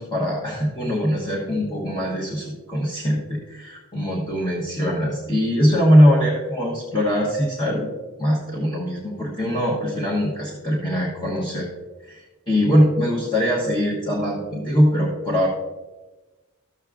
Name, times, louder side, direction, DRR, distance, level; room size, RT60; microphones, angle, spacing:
voice 1, 0.0-7.9 8.2-11.7 12.0-15.5, equal, 20° left, -5 dB, 1.3 m, -21 dB
13.0 x 7.6 x 2.4 m, 1.2 s
head